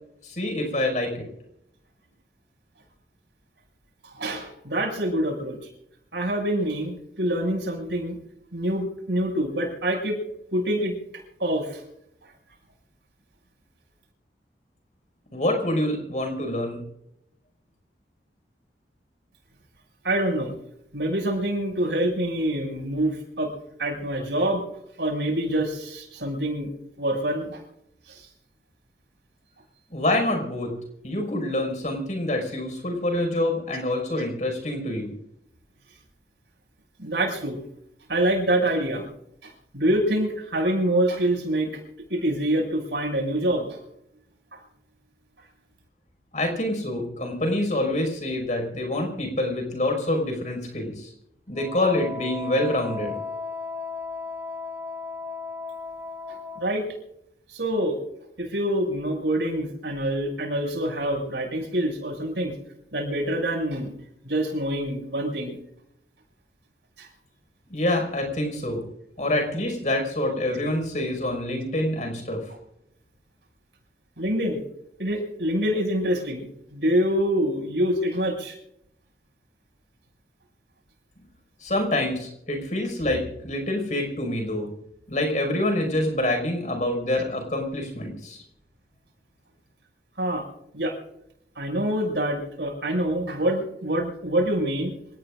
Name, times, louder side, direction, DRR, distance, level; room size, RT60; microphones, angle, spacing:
voice 1, 0.2-1.3 15.3-16.8 29.9-30.7 31.0-35.1 46.3-51.1 51.5-53.2 67.7-68.8 69.2-72.5 81.6-84.7 85.1-88.4, left 1 dB, 45° left, 3 dB, 5.7 m, -26 dB
voice 2, 4.0-5.6 6.1-8.2 8.5-10.2 10.5-10.9 11.4-11.8 20.0-20.5 20.9-23.5 23.8-24.6 25.0-26.7 27.0-27.6 28.1-28.3 37.0-37.6 38.1-39.1 39.4-41.7 42.1-43.8 44.5-44.6 56.3-56.8 57.5-58.0 58.4-62.5 62.9-63.9 64.2-65.6 67.0-67.1 74.2-74.6 75.0-78.6 90.2-90.4 90.7-91.0 91.5-94.9, right 1 dB, 80° right, 1 dB, 6.7 m, -26 dB
Wind instrument woodwind instrument, 51.5-56.8, left 4 dB, 10° right, 2.9 m, -35 dB
27.0 x 18.5 x 2.6 m, 0.79 s
head